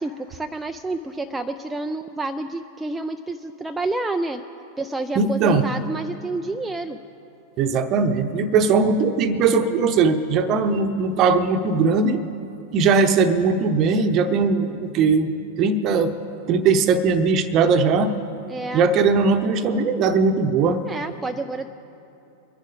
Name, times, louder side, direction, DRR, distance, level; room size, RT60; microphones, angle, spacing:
voice 1, 0.0-4.4 4.8-7.0 18.5-18.9 20.9-21.7, right 2 dB, 10° right, 5 dB, 0.4 m, -29 dB
voice 2, 5.1-5.7 7.6-12.2 12.7-15.3 15.6-16.2 16.5-18.2 18.7-20.8, right 4 dB, 35° right, 9 dB, 0.9 m, -19 dB
24.0 x 10.5 x 3.9 m, 2.8 s
figure-of-eight pair, 90°, 0 cm